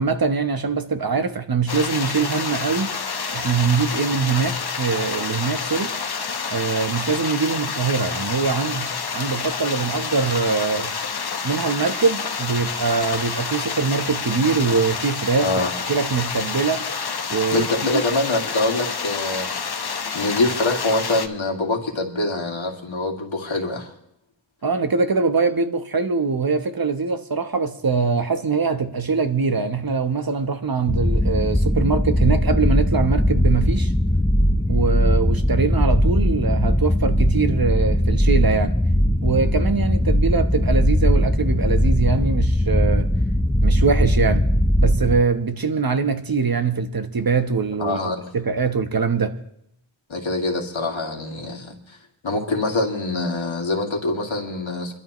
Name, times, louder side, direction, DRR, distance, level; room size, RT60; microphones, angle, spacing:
voice 1, 0.0-2.9 3.3-5.9 6.5-10.9 11.4-15.5 15.9-16.8 17.3-17.7 17.9-18.0 24.6-33.9 34.7-38.7 39.2-43.1 43.6-44.5 44.8-48.0 48.3-49.4, right 4 dB, 50° right, 1.1 m, -23 dB
sound 1, 1.7-21.3, left 5 dB, 55° left, 1.0 m, -28 dB
voice 2, 15.4-15.7 17.5-19.7 20.1-23.9 47.8-48.2 50.1-52.0 52.2-54.9, left 2 dB, 80° left, 2.3 m, -24 dB
sound 2, 30.9-45.2, equal, 5° left, 0.6 m, -19 dB
24.0 x 12.5 x 3.1 m
wide cardioid pair, 60°, 47 cm